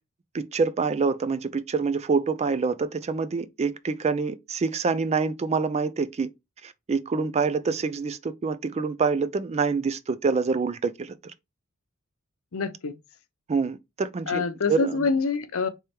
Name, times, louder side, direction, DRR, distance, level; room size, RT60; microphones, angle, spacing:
voice 1, 0.3-6.3 6.6-11.2 13.5-14.4 14.7-15.1, right 4 dB, 30° right, 0.3 m, -26 dB
voice 2, 12.5-12.9 14.3-15.7, left 4 dB, 65° left, 0.7 m, -26 dB
3.4 x 3.3 x 4.3 m
head